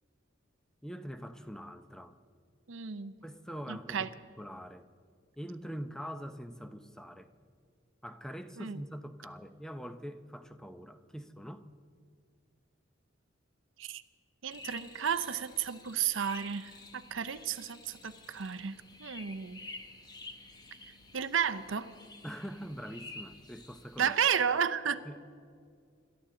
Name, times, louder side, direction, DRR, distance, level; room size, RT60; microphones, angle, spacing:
voice 1, 0.8-2.2 3.2-4.9 5.4-7.3 8.0-11.7 22.2-24.2 25.0-25.2, equal, 5° left, 9 dB, 0.6 m, -43 dB
voice 2, 2.7-3.1 3.7-4.1 8.6-8.8 13.8-14.0 14.4-19.6 21.1-21.9 24.0-25.0, right 7 dB, 75° right, 12 dB, 0.7 m, -32 dB
sound 1, 14.5-24.4, left 2 dB, 20° left, 1.0 m, -50 dB
26.5 x 13.0 x 3.8 m, 2.2 s
head